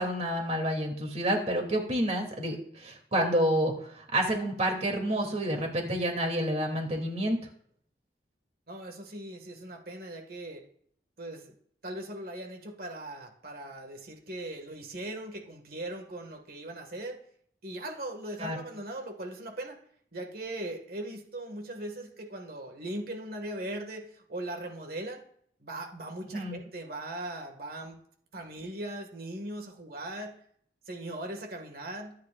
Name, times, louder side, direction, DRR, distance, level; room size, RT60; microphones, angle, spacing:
voice 1, 0.0-7.4 18.4-18.6 26.3-26.6, right 1 dB, 40° right, 1 dB, 2.8 m, -29 dB
voice 2, 8.7-10.6 11.2-11.5 11.8-17.2 17.6-19.8 20.1-25.2 25.6-28.0 28.3-30.3 30.9-32.1, right 1 dB, 55° right, 3 dB, 1.9 m, -39 dB
24.0 x 9.7 x 2.5 m, 0.64 s
head